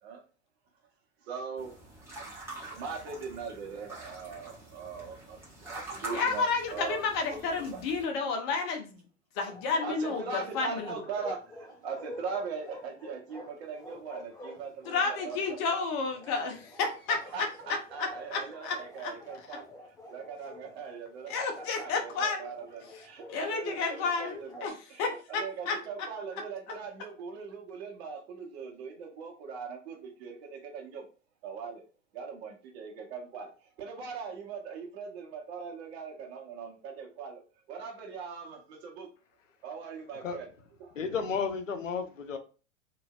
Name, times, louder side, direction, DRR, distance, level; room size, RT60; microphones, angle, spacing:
voice 1, 1.2-1.7 2.7-7.0 7.3-7.8 9.8-15.6 16.3-16.4 17.1-19.7 20.1-31.0 31.4-31.8 32.1-37.4 37.7-39.1 39.6-40.5 40.8-40.9, right 5 dB, 55° right, 1.1 m, -40 dB
sound 1, 1.6-8.0, right 2 dB, 5° right, 1.2 m, -45 dB
voice 2, 6.1-9.0 9.4-10.9 14.9-17.5 18.0-19.1 21.3-22.5 23.3-26.1, left 4 dB, 40° left, 0.8 m, -31 dB
Bark, 9.4-24.7, left 1 dB, 10° left, 0.5 m, -49 dB
voice 3, 41.0-42.4, left 5 dB, 80° left, 0.6 m, -32 dB
2.9 x 2.6 x 2.4 m
figure-of-eight pair, 95°, 38 cm